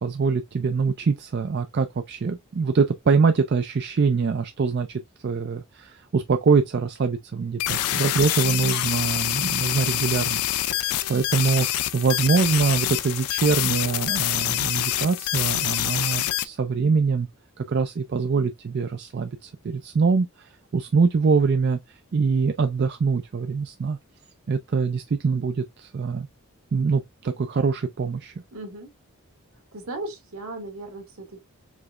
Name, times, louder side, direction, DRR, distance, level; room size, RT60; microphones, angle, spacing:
voice 1, 0.0-17.3 17.6-24.0 24.5-26.3 26.7-28.3, right 5 dB, 50° right, 0.4 m, -24 dB
sound 1, 7.6-16.4, left 13 dB, 85° left, 0.4 m, -26 dB
voice 2, 28.5-28.9 29.7-31.4, right 2 dB, 70° right, 1.5 m, -36 dB
4.9 x 3.1 x 2.3 m
head